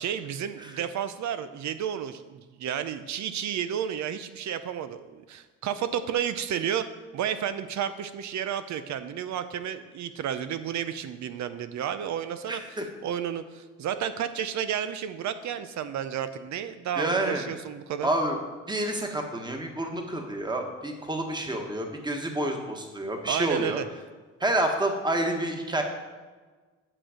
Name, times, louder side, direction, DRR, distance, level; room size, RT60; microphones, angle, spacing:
voice 1, 0.0-6.9 7.1-18.1 23.2-23.9, right 9 dB, 70° right, 11 dB, 0.7 m, -32 dB
voice 2, 12.5-12.8 17.0-17.4 18.0-18.4 18.7-23.8 24.4-25.8, right 1 dB, 15° right, 3 dB, 1.4 m, -28 dB
9.0 x 6.3 x 5.0 m, 1.4 s
cardioid pair, 90°, 30 cm